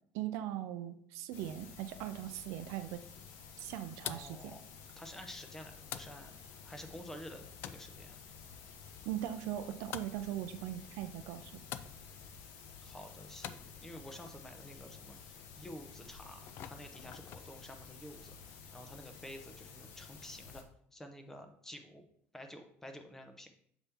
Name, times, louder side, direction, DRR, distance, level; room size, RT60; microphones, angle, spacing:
voice 1, 0.1-3.0 3.6-4.5 9.0-11.5, right 12 dB, 75° right, 10 dB, 0.5 m, -40 dB
sound 1, 1.3-20.6, left 6 dB, 70° left, 1.0 m, -53 dB
sound 2, 2.3-17.6, left 10 dB, 50° left, 0.3 m, -51 dB
voice 2, 4.0-4.6 5.0-6.4 6.6-8.2 12.8-20.6 20.9-22.0 22.3-23.5, left 1 dB, 10° left, 6 dB, 0.6 m, -50 dB
6.9 x 4.2 x 3.5 m, 0.66 s
cardioid pair, 165°, 5 cm